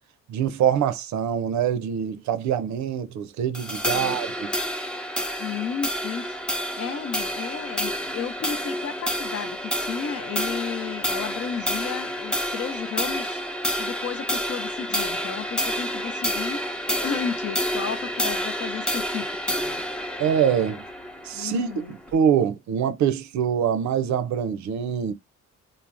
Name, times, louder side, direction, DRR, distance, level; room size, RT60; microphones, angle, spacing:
voice 1, 0.3-4.5 20.2-20.8 21.2-25.1, right 8 dB, 70° right, 0.5 m, -24 dB
sound 1, 3.5-22.1, equal, 5° left, 0.4 m, -29 dB
voice 2, 5.4-13.4 13.8-16.6 17.0-19.8 21.3-21.9, left 7 dB, 50° left, 0.6 m, -33 dB
3.3 x 2.0 x 2.5 m
cardioid pair, 90°, 30 cm